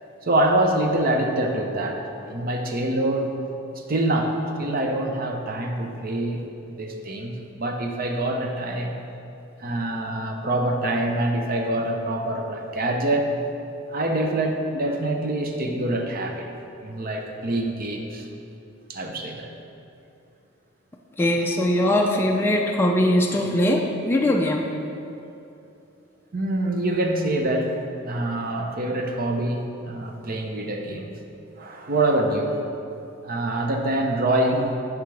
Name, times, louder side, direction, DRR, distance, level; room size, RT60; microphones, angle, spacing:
voice 1, 0.2-2.0 2.3-3.3 3.9-6.4 6.8-8.9 9.6-13.3 13.9-16.5 16.8-18.3 18.9-19.5 21.5-21.6 26.3-27.7 28.0-31.1 31.6-32.5 33.2-34.7, right 1 dB, 45° right, 3 dB, 0.7 m, -25 dB
voice 2, 21.2-24.7, left 1 dB, 10° left, 0 dB, 0.4 m, -21 dB
10.5 x 4.9 x 3.3 m, 2.7 s
head